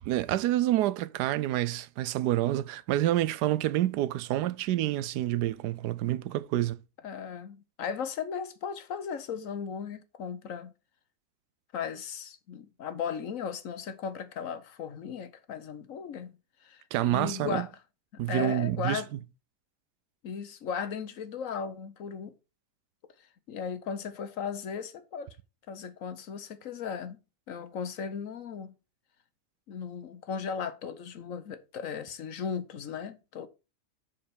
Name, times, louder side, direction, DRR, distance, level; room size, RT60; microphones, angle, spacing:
voice 1, 0.1-6.8 16.9-17.7 18.2-19.0, right 14 dB, 90° right, 1.2 m, -28 dB
voice 2, 7.0-10.7 11.7-16.3 16.6-17.7 18.3-19.1 20.2-22.3 23.5-25.3 25.7-27.2 27.5-28.7 29.7-33.5, left 7 dB, 60° left, 1.1 m, -36 dB
7.0 x 5.5 x 5.0 m
omnidirectional pair, 1.7 m